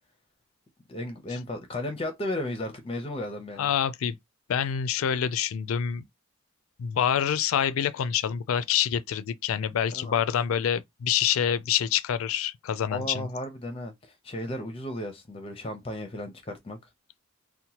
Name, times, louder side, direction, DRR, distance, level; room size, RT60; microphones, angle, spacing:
voice 1, 0.9-3.7 9.9-10.2 12.9-16.8, left 1 dB, 25° left, 0.5 m, -34 dB
voice 2, 3.6-4.2 4.5-6.0 6.8-13.3, left 9 dB, 80° left, 0.3 m, -26 dB
2.9 x 2.1 x 2.8 m
head